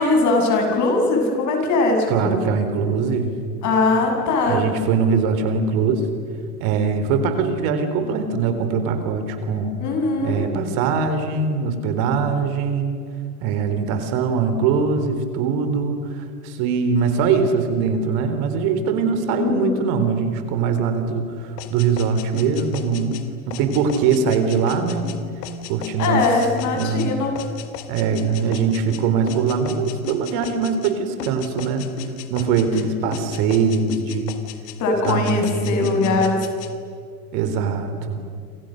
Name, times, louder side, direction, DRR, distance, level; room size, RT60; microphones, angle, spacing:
voice 1, 0.0-2.4 3.6-4.6 9.8-10.4 19.4-19.7 26.0-27.3 34.8-36.4, left 3 dB, 40° left, 2 dB, 7.7 m, -20 dB
voice 2, 2.1-3.3 4.5-6.1 6.6-9.7 10.2-13.0 13.4-23.2 23.5-25.2 25.7-26.3 26.7-27.1 27.9-31.8 32.3-34.3 35.0-36.2 37.3-38.2, right 5 dB, 55° right, 8 dB, 3.9 m, -22 dB
sound 1, 21.6-30.9 31.2-32.9 33.1-34.8 35.0-36.7, left 9 dB, 55° left, 2.7 m, -36 dB
28.5 x 27.5 x 6.7 m, 2.3 s
supercardioid pair, 120°, 43 cm